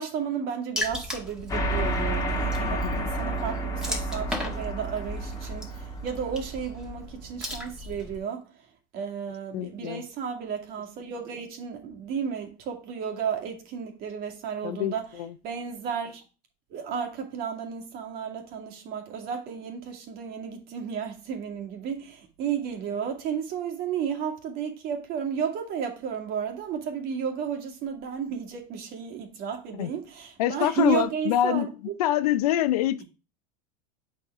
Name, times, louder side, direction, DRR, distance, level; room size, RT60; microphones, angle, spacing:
voice 1, 0.0-5.8 6.0-8.5 8.9-15.0 15.4-16.2 16.7-31.7, right 7 dB, 50° right, 2.2 m, -33 dB
Water / Splash splatter, 0.8-8.2, left 1 dB, 5° right, 1.9 m, -37 dB
sound 1, 1.5-7.3, right 2 dB, 20° left, 1.7 m, -31 dB
voice 2, 2.7-3.1 9.5-10.0 14.6-15.4 29.7-29.9 30.4-31.7 32.0-33.0, left 13 dB, 75° left, 0.6 m, -26 dB
8.1 x 4.7 x 3.6 m
hypercardioid pair, 95°, 19 cm